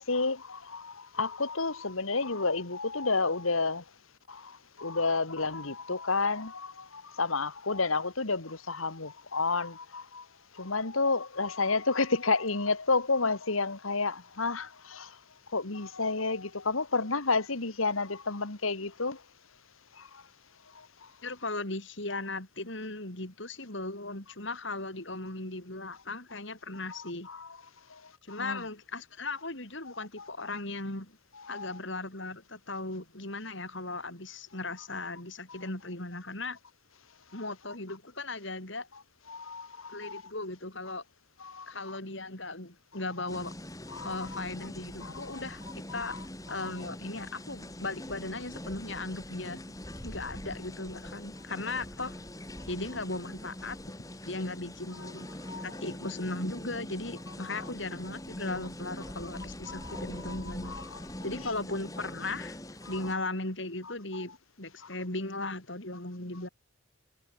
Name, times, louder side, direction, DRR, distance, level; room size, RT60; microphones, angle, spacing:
voice 1, 0.0-3.8 4.3-4.5 4.8-10.2 10.6-15.1 15.5-19.2 26.9-27.5 28.4-28.6 31.5-31.7 39.3-40.2 41.4-41.7 43.9-44.1 45.0-45.4 45.9-46.2 55.5-55.7 59.7-60.4 60.6-61.0 64.1-64.2, left 3 dB, 85° left, 2.2 m, -31 dB
voice 2, 21.2-27.3 28.2-31.1 31.5-36.6 37.3-38.9 39.9-41.0 41.7-43.5 44.0-45.6 45.9-46.2 46.5-49.6 50.0-52.2 52.7-53.8 54.3-55.3 55.6-60.7 61.2-62.6 62.9-66.5, left 2 dB, 60° left, 4.7 m, -37 dB
sound 1, 43.3-63.1, left 1 dB, 15° left, 3.5 m, -43 dB
head